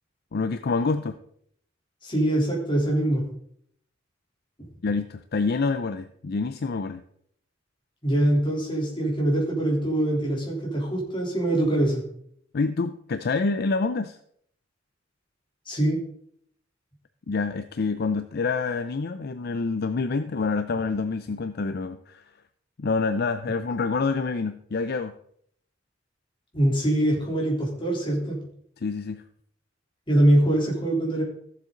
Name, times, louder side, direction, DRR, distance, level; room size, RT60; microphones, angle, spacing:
voice 1, 0.3-1.2 4.8-7.0 12.5-14.2 17.3-22.3 22.8-25.1 28.8-29.2, left 4 dB, 55° left, 10 dB, 0.5 m, -27 dB
voice 2, 2.0-3.2 8.0-12.0 15.7-16.0 26.5-28.4 30.1-31.2, right 1 dB, 25° left, -2 dB, 3.4 m, -23 dB
14.5 x 7.5 x 3.8 m, 0.66 s
head